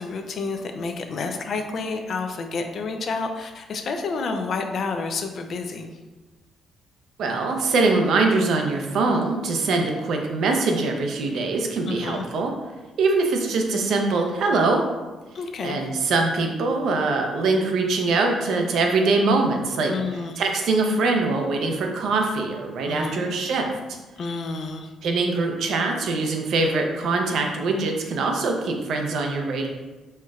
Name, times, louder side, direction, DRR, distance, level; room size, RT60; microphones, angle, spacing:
voice 1, 0.0-5.9 11.9-12.2 15.3-15.8 19.9-20.4 22.9-23.3 24.2-24.9, left 4 dB, 60° left, 5 dB, 0.4 m, -29 dB
voice 2, 7.2-12.5 13.0-14.8 15.6-19.9 20.4-23.7 25.0-29.7, right 3 dB, 75° right, 2 dB, 0.6 m, -23 dB
4.3 x 3.0 x 2.4 m, 1.2 s
cardioid pair, 90°, 0 cm